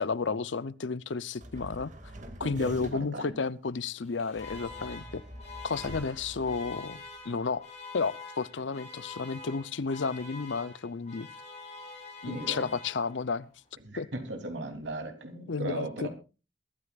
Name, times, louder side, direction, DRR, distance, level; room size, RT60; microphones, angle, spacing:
voice 1, 0.0-1.9 2.4-5.2 5.6-7.7 7.9-11.3 12.2-13.5 14.0-14.1 15.5-16.1, left 4 dB, 80° left, 0.6 m, -32 dB
sound 1, 1.4-3.2 4.3-7.2, right 1 dB, 45° right, 2.2 m, -45 dB
voice 2, 2.4-3.4 12.3-12.7 13.8-16.1, right 2 dB, 80° right, 3.2 m, -38 dB
Alarm, 4.0-13.4, left 4 dB, 40° left, 5.1 m, -46 dB
22.5 x 13.0 x 2.4 m
head